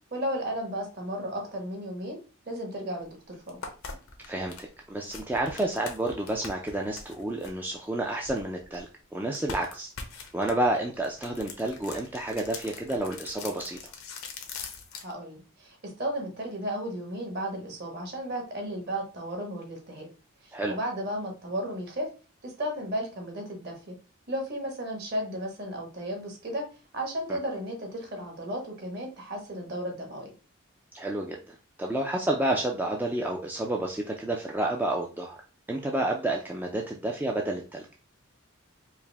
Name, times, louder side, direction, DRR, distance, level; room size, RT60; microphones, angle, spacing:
voice 1, 0.1-2.2 2.5-3.6 15.0-20.1 20.4-22.1 22.4-23.9 24.3-26.6 26.9-30.3, equal, 50° right, 2 dB, 1.2 m, -34 dB
sound 1, 3.0-3.1 3.5-8.9 9.3-15.1, left 4 dB, 85° left, 0.8 m, -42 dB
voice 2, 4.3-8.9 9.1-9.9 10.3-13.9 20.5-20.7 30.9-35.4 35.7-37.8, right 1 dB, 10° right, 0 dB, 0.3 m, -30 dB
4.6 x 2.0 x 3.3 m, 0.35 s
head